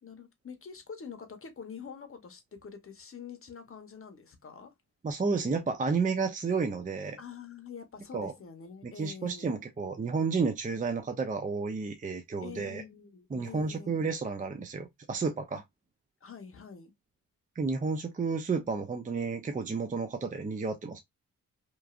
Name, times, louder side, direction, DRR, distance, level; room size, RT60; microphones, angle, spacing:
voice 1, 0.0-4.7 7.2-9.6 12.4-14.0 16.2-16.9, left 6 dB, 40° left, 0.8 m, -46 dB
voice 2, 5.0-7.2 8.1-8.3 8.8-12.8 13.3-15.6 17.6-21.0, right 4 dB, 25° right, 0.5 m, -31 dB
3.0 x 2.5 x 2.3 m
cardioid pair, 80°, 33 cm